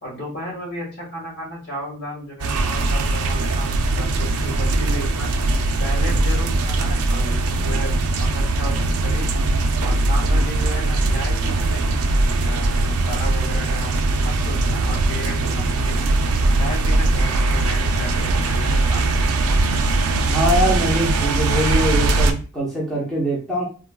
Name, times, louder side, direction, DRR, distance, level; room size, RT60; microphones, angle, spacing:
voice 1, 0.0-5.3 5.8-9.3 9.8-16.1 16.5-19.2, equal, 45° left, -3 dB, 1.6 m, -34 dB
sound 1, 2.4-22.3, right 2 dB, 80° right, 0.4 m, -20 dB
voice 2, 20.3-23.6, right 1 dB, ahead, -7 dB, 0.8 m, -23 dB
3.7 x 2.4 x 2.2 m, 0.36 s
head